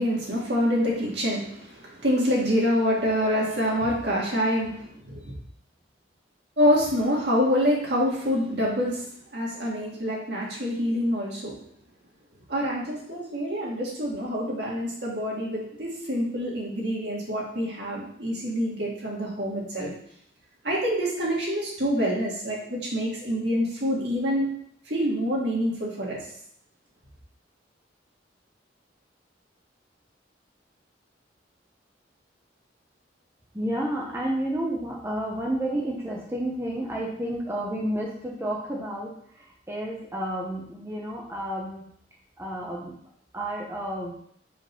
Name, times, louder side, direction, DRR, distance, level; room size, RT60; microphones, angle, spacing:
voice 1, 0.0-4.7 5.1-5.2 6.6-9.0 9.3-11.6 12.5-19.9 20.6-24.5 24.9-26.2, equal, 60° right, -4 dB, 1.9 m, -26 dB
voice 2, 33.5-39.1 39.7-41.9 42.4-43.0 43.3-44.1, right 1 dB, 15° right, -3 dB, 0.8 m, -30 dB
5.1 x 3.9 x 5.3 m, 0.66 s
head